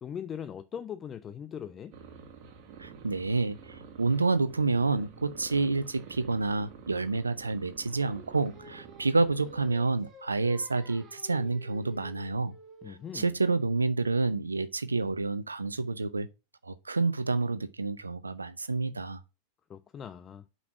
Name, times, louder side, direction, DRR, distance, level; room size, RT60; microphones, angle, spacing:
voice 1, 0.0-1.9 12.8-13.4 19.7-20.5, left 8 dB, 25° left, 0.5 m, -40 dB
sound 1, 1.9-9.7, right 6 dB, 40° right, 2.2 m, -49 dB
voice 2, 2.8-12.5 12.9-16.3 16.6-19.2, right 3 dB, 80° right, 0.6 m, -29 dB
Singing, 8.0-13.2, right 1 dB, 20° right, 2.2 m, -52 dB
5.9 x 5.4 x 6.1 m
figure-of-eight pair, 90°, 0 cm